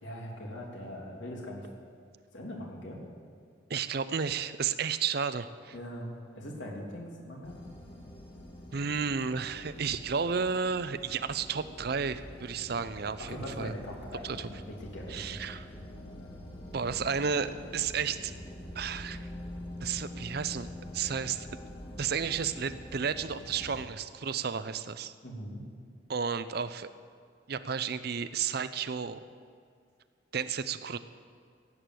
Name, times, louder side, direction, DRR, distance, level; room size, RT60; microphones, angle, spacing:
voice 1, 0.0-1.7 2.3-3.0 5.7-7.6 13.2-15.4 25.2-25.6, equal, 85° left, -2 dB, 3.1 m, -41 dB
voice 2, 3.7-5.7 8.7-13.7 14.2-14.5 15.1-15.7 16.7-18.3 18.7-19.3 19.8-20.7 20.9-21.6 22.0-25.1 26.1-26.9 27.5-29.2 30.3-31.0, right 6 dB, 55° right, 13 dB, 0.6 m, -32 dB
sound 1, 7.4-23.9, left 1 dB, 30° left, 1.7 m, -45 dB
15.5 x 8.6 x 7.8 m, 2.2 s
head